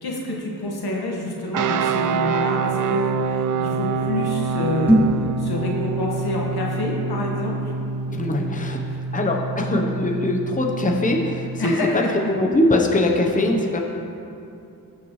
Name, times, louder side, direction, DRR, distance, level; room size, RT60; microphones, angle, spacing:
voice 1, 0.0-7.7 11.6-12.0, left 2 dB, 75° left, -2 dB, 1.6 m, -28 dB
sound 1, 1.5-11.7, right 5 dB, 55° right, 0.5 m, -26 dB
sound 2, 4.8-5.3, equal, 5° right, 2.3 m, -18 dB
voice 2, 8.1-8.8 9.1-13.8, left 1 dB, 20° left, 1 dB, 0.9 m, -22 dB
15.0 x 5.8 x 3.2 m, 2.6 s
cardioid pair, 55°, 38 cm